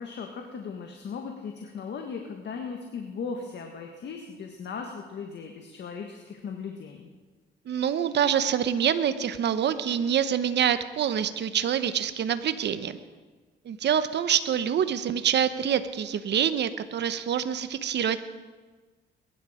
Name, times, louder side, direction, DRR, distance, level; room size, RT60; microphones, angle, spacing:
voice 1, 0.0-7.1, left 5 dB, 60° left, 3 dB, 1.7 m, -37 dB
voice 2, 7.7-13.0 13.6-18.3, right 9 dB, 60° right, 11 dB, 1.0 m, -26 dB
21.0 x 11.5 x 5.1 m, 1.4 s
cardioid pair, 90°, 20 cm